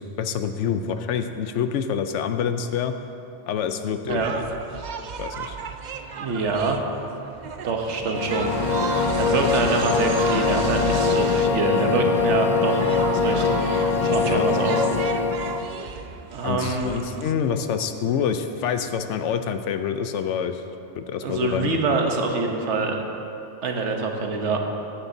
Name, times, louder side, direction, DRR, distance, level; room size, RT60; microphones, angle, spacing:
voice 1, 0.0-2.9 3.5-4.4 5.2-5.6 14.2-14.5 16.4-20.6 21.0-21.8, left 7 dB, 90° left, 8 dB, 0.9 m, -27 dB
sound 1, 4.1-17.3, right 5 dB, 55° right, 0.5 m, -34 dB
voice 2, 6.2-6.8 7.6-8.5 9.2-13.5 14.1-14.9 16.3-17.0 21.2-23.0 23.6-24.6, right 4 dB, 85° right, 3 dB, 1.3 m, -25 dB
sound 2, 8.0-15.8, left 5 dB, 65° left, 0.3 m, -23 dB
14.5 x 10.0 x 2.7 m, 2.8 s
omnidirectional pair, 1.2 m